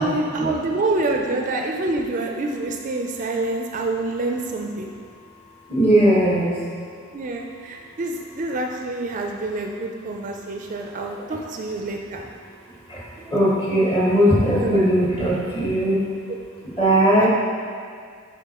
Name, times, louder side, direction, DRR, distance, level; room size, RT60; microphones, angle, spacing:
voice 1, 0.0-4.9 7.1-12.3 14.6-14.9 17.2-17.3, right 2 dB, 40° right, 2 dB, 0.4 m, -27 dB
voice 2, 5.7-6.6 11.3-11.4 12.8-16.1 16.6-17.3, right 1 dB, 25° left, -6 dB, 1.3 m, -19 dB
6.8 x 4.9 x 2.9 m, 2.1 s
head